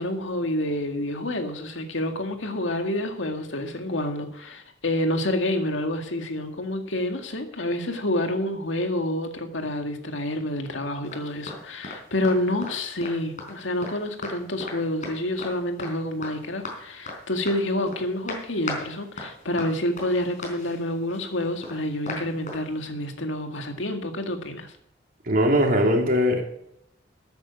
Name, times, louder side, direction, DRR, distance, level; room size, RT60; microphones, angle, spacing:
voice 1, 0.0-24.7, left 1 dB, 85° left, 5 dB, 2.0 m, -28 dB
sound 1, 11.0-11.6 11.8-12.0 12.2-12.7 13.0-13.9 14.2-14.3 14.6-14.8 15.0-15.5 15.8-15.9 16.2-16.8 17.1-17.2 17.5-18.0 18.3-18.8 19.2-22.6, left 2 dB, 45° left, 4.3 m, -36 dB
voice 2, 25.3-26.4, equal, 50° right, 2 dB, 2.8 m, -20 dB
14.0 x 9.3 x 5.3 m, 0.75 s
head